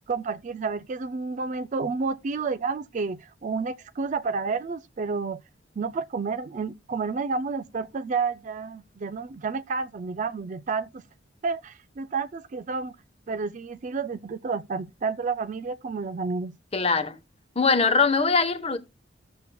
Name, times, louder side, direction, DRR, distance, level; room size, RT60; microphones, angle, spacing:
voice 1, 0.1-5.4 5.8-11.0 11.4-13.0 13.3-16.5, right 4 dB, 40° right, 0.4 m, -30 dB
voice 2, 16.7-17.1 17.6-18.8, left 4 dB, 30° left, 1.0 m, -22 dB
14.0 x 7.0 x 2.2 m
head